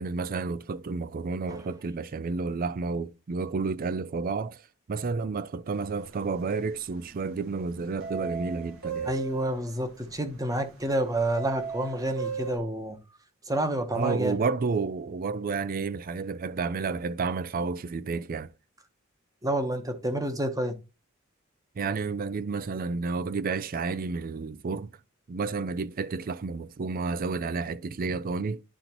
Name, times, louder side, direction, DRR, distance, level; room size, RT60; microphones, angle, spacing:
voice 1, 0.0-4.6 4.9-9.1 13.9-18.5 21.8-24.9 25.3-28.6, right 4 dB, 45° right, 0.4 m, -31 dB
sound 1, 5.9-6.2 6.5-7.3 8.0-12.6, right 6 dB, 70° right, 1.6 m, -36 dB
voice 2, 9.0-13.0 13.4-14.4 19.4-20.8, right 1 dB, 15° right, 1.0 m, -29 dB
11.0 x 3.9 x 2.9 m
head